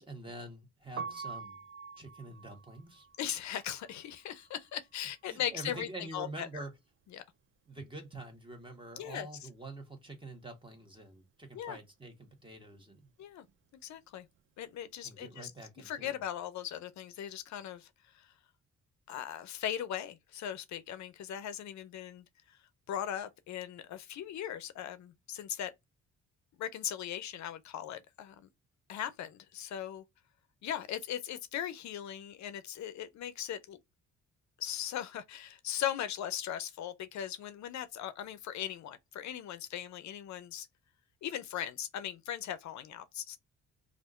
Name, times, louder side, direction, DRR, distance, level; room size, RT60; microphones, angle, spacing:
voice 1, 0.0-1.6 2.0-3.1 5.3-6.7 7.7-13.0 15.0-16.2, right 2 dB, 15° right, 1.2 m, -46 dB
Piano, 0.8-6.8 7.0-8.6 8.9-15.3, right 5 dB, 45° right, 0.5 m, -48 dB
voice 2, 3.2-6.5 7.1-7.2 9.0-9.3 11.5-11.8 13.2-13.4 13.8-14.3 14.6-15.5 15.8-17.9 18.2-18.3 19.1-22.2 22.9-25.7 26.6-28.3 28.9-30.0 30.6-33.8 34.6-40.7 41.2-43.4, left 10 dB, 65° left, 0.5 m, -39 dB
3.5 x 2.5 x 2.4 m
cardioid pair, 90°, 30 cm